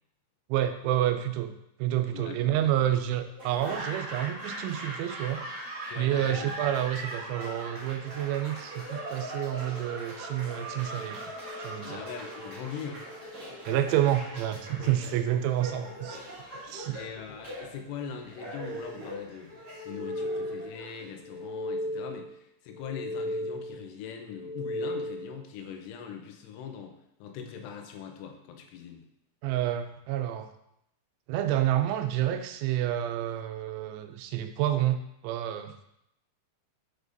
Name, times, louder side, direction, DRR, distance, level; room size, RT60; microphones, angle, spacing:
voice 1, 0.5-1.5 1.8-5.4 6.0-11.3 11.6-12.0 13.7-16.2 16.6-17.0 29.4-30.5 31.3-35.8, right 12 dB, 90° right, 7 dB, 3.0 m, -29 dB
voice 2, 2.1-2.6 5.9-6.5 11.8-13.0 14.8-15.2 16.9-19.5 19.8-29.1, left 7 dB, 90° left, 4 dB, 3.2 m, -41 dB
Laughter / Applause, 3.4-21.4, right 1 dB, 55° right, 1.1 m, -41 dB
sound 1, 6.6-15.4, left 2 dB, 30° left, 1.8 m, -50 dB
sound 2, 19.7-20.8 21.2-22.3 22.7-23.8 24.3-25.4, left 1 dB, 65° left, 2.3 m, -35 dB
7.8 x 4.9 x 2.6 m, 0.79 s
omnidirectional pair, 5.3 m